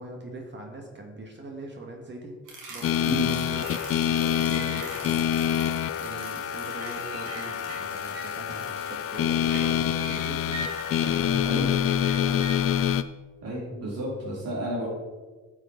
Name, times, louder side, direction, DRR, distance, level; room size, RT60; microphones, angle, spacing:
voice 1, 0.0-2.4 2.7-10.6 11.1-12.4 14.6-14.8, right 2 dB, 40° right, 1 dB, 1.6 m, -42 dB
sound 1, 2.5-12.6, right 2 dB, 90° right, 2.7 m, -41 dB
sound 2, 2.8-13.0, left 9 dB, 50° left, 0.5 m, -26 dB
voice 2, 13.4-14.9, equal, 55° right, -5 dB, 2.6 m, -31 dB
10.0 x 6.5 x 3.9 m, 1.3 s
cardioid pair, 90°, 30 cm